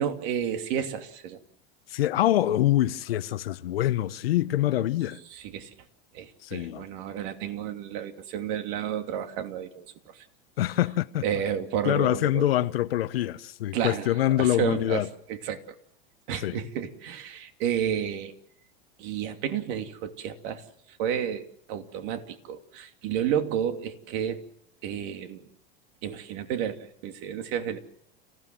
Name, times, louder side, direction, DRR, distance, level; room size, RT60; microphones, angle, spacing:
voice 1, 0.0-1.4 5.3-5.7 6.1-10.1 11.2-12.4 13.7-14.1 14.4-15.0 15.3-15.6 16.3-18.3 19.0-20.6 21.0-24.4 24.8-25.4 26.0-27.8, right 9 dB, 60° right, 2.8 m, -31 dB
voice 2, 1.9-5.2 6.4-6.8 10.6-11.2 11.8-15.1 16.4-16.6, left 13 dB, 85° left, 1.2 m, -25 dB
29.5 x 16.5 x 7.7 m
hypercardioid pair, 110°, 29 cm